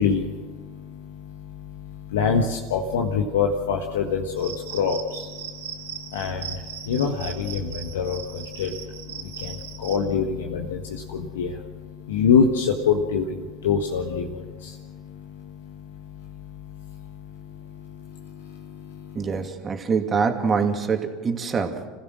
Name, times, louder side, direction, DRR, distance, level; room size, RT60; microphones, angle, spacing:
voice 1, 0.0-19.2, left 6 dB, 80° left, 1 dB, 1.5 m, -27 dB
Cricket, 4.4-10.0, right 9 dB, 80° right, 1.9 m, -38 dB
voice 2, 19.1-21.9, right 5 dB, 30° right, 5 dB, 2.5 m, -25 dB
27.0 x 16.0 x 6.4 m, 1.4 s
hypercardioid pair, 85°, 0 cm